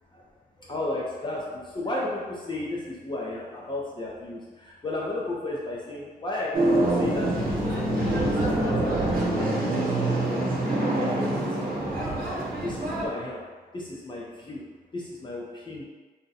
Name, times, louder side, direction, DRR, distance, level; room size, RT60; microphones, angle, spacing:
voice 1, 0.6-11.7 12.6-14.6 14.9-15.8, left 2 dB, 30° left, -5 dB, 0.6 m, -34 dB
sound 1, 6.5-13.1, right 1 dB, 60° right, 0.9 m, -25 dB
2.7 x 2.2 x 3.8 m, 1.3 s
cardioid pair, 85°, 17 cm